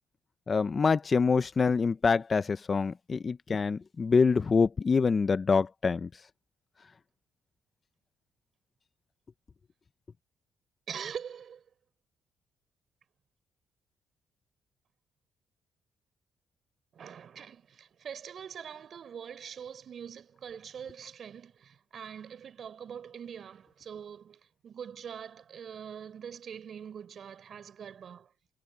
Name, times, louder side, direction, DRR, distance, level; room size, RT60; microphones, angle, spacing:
voice 1, 0.5-6.1, left 5 dB, 35° left, 0.9 m, -25 dB
voice 2, 10.9-11.7 16.9-28.3, right 8 dB, 55° right, 4.7 m, -43 dB
cardioid pair, 90°, 0 cm